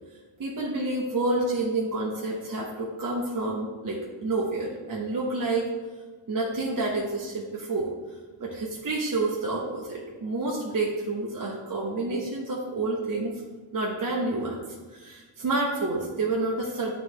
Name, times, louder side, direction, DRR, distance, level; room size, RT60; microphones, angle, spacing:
voice 1, 0.4-5.7 6.3-7.9 8.4-13.4 13.7-14.6 14.9-16.9, right 2 dB, 45° right, -3 dB, 1.1 m, -29 dB
9.2 x 3.1 x 3.3 m, 1.4 s
cardioid pair, 80°, 45 cm